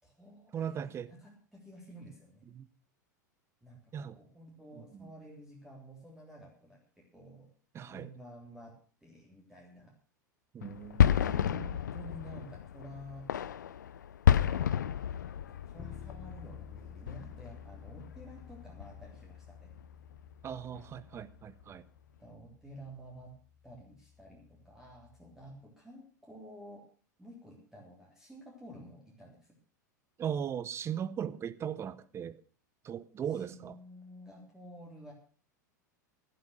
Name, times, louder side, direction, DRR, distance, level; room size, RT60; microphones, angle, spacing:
voice 1, 0.0-2.5 3.6-7.5 7.8-8.7 9.0-9.9 11.0-13.3 14.5-14.8 15.5-19.7 22.2-23.3 23.6-26.8 27.2-29.4 33.3-35.1, right 1 dB, 5° right, 3.4 m, -51 dB
voice 2, 0.5-1.1 2.5-2.7 3.9-4.2 4.8-5.1 7.7-8.1 10.5-11.6 20.4-21.8 30.2-32.4 32.8-33.8, right 8 dB, 25° right, 0.9 m, -38 dB
sound 1, 10.6-18.5 18.8-19.3 19.7-19.8 20.2-20.3 20.7-21.2, left 9 dB, 70° left, 0.6 m, -31 dB
Bass guitar, 15.8-25.6, left 8 dB, 30° left, 1.0 m, -52 dB
12.5 x 11.5 x 6.4 m
figure-of-eight pair, 90°, 10 cm